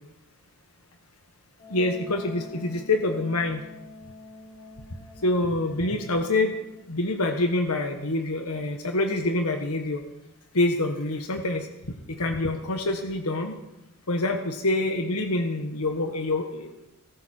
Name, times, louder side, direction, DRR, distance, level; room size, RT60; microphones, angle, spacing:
Wind instrument woodwind instrument, 1.6-7.1, left 2 dB, 30° left, 5.3 m, -47 dB
voice 1, 1.7-3.6 5.2-6.5 6.9-10.0 10.5-11.7 12.1-13.5 14.1-16.9, left 2 dB, 85° left, 4 dB, 1.5 m, -26 dB
20.0 x 13.0 x 4.5 m, 0.90 s
head